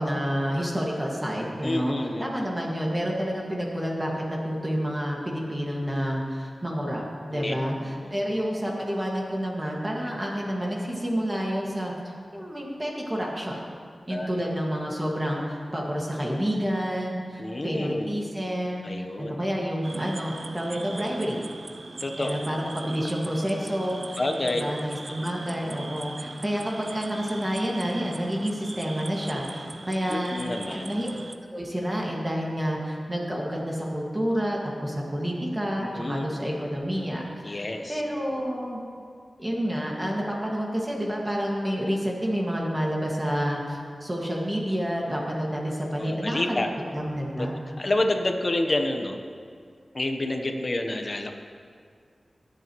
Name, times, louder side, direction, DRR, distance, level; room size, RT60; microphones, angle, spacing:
voice 1, 0.0-13.7 14.1-21.4 22.2-31.1 31.5-38.8 39.4-47.5, equal, 20° right, -3 dB, 2.0 m, -29 dB
voice 2, 1.6-2.3 7.3-7.5 8.0-8.1 14.1-14.3 17.4-18.2 18.8-19.4 22.0-22.3 24.2-24.6 30.1-30.9 35.8-36.5 37.4-38.0 46.0-46.7 47.8-49.2 49.9-51.3, left 2 dB, 45° left, 4 dB, 1.1 m, -28 dB
sound 1, 19.8-31.4, right 2 dB, 50° right, 0.6 m, -40 dB
19.5 x 8.7 x 3.2 m, 2.2 s
wide cardioid pair, 65°, 0 cm